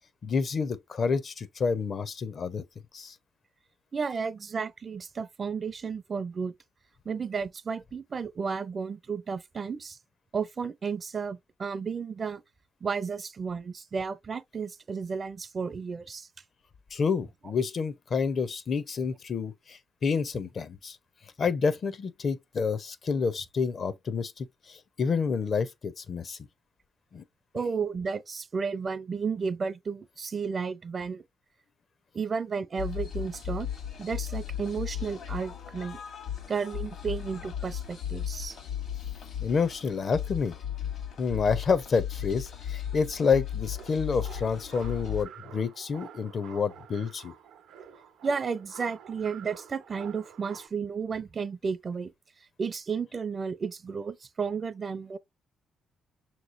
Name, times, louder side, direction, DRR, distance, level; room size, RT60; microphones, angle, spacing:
voice 1, 0.2-2.6 2.9-3.1 16.9-21.0 21.4-26.4 27.1-27.2 39.4-40.5 41.2-47.3, left 5 dB, 50° left, 0.6 m, -29 dB
voice 2, 3.9-6.5 7.1-10.0 10.3-12.4 12.8-16.3 27.5-31.2 32.1-33.7 34.0-36.0 36.5-38.6 48.2-52.1 52.6-55.2, right 5 dB, 40° right, 0.4 m, -33 dB
sound 1, 32.8-45.2, left 10 dB, 70° left, 1.3 m, -36 dB
sound 2, 43.7-50.7, right 8 dB, 85° right, 0.6 m, -48 dB
6.1 x 3.0 x 2.5 m
cardioid pair, 90°, 0 cm